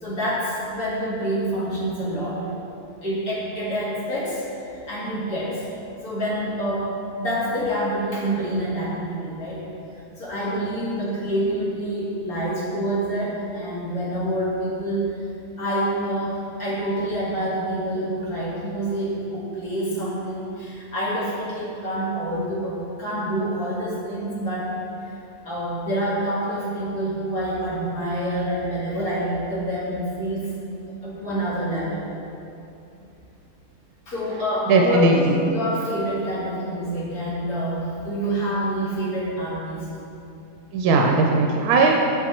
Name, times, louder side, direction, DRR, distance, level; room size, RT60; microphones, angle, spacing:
voice 1, 0.0-2.5 3.0-5.6 6.0-9.6 10.2-15.1 15.6-24.8 25.1-25.2 25.4-30.5 31.0-32.1 34.1-39.9, right 1 dB, 70° left, -6 dB, 2.0 m, -27 dB
voice 2, 34.7-35.3 40.7-41.9, right 3 dB, 85° right, 1 dB, 1.1 m, -18 dB
6.2 x 5.9 x 4.2 m, 2.7 s
omnidirectional pair, 1.6 m